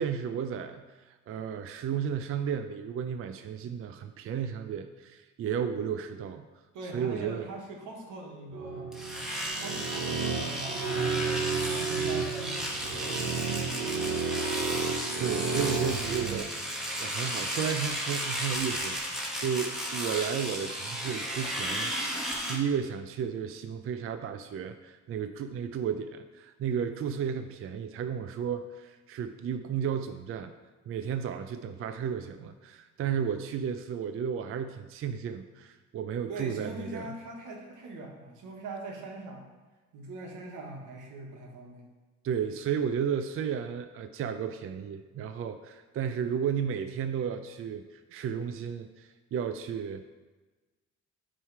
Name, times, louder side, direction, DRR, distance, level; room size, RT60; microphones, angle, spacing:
voice 1, 0.0-6.5 6.9-7.5 15.2-22.2 22.5-30.5 30.9-37.2 42.2-50.0, right 7 dB, 50° right, 8 dB, 0.4 m, -33 dB
voice 2, 6.7-8.9 9.4-14.8 36.3-39.5 39.9-41.9, right 2 dB, 85° right, 1 dB, 1.3 m, -42 dB
sound 1, 8.5-16.4, right 5 dB, 65° right, 0.9 m, -32 dB
Domestic sounds home sounds, 8.9-22.6, equal, ahead, 1.3 m, -34 dB
8.9 x 3.2 x 4.6 m, 1.3 s
cardioid pair, 90°, 30 cm